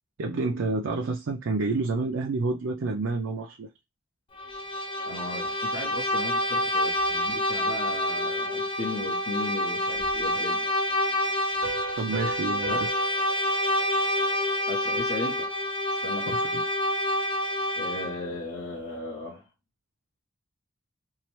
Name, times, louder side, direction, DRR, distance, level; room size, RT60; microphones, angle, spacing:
voice 1, 0.2-3.7 12.0-12.9 16.3-16.6, right 3 dB, 70° right, 0.4 m, -29 dB
Bowed string instrument, 4.4-18.3, left 1 dB, 25° left, 0.4 m, -27 dB
voice 2, 5.0-10.7 12.7-12.9 14.7-15.5 16.0-16.6 17.8-19.5, left 2 dB, 85° left, 0.8 m, -37 dB
Piano, 11.6-15.0, right 4 dB, 55° right, 1.0 m, -39 dB
2.8 x 2.0 x 3.0 m
head